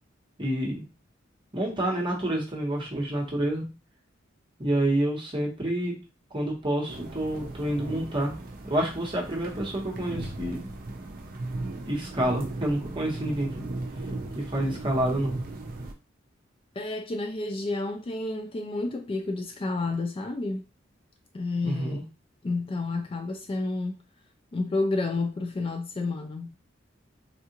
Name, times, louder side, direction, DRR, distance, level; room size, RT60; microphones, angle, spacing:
voice 1, 0.4-0.9 1.5-3.7 4.6-5.9 6.3-8.3 8.6-10.7 11.9-13.7 14.3-15.4 21.6-22.0, right 1 dB, 25° right, 1.0 m, -28 dB
sound 1, 6.9-15.9, right 2 dB, 50° right, 0.5 m, -37 dB
voice 2, 16.8-20.6 21.3-22.0 22.4-24.0 24.5-26.6, left 3 dB, 30° left, 0.3 m, -30 dB
3.6 x 2.4 x 2.8 m
head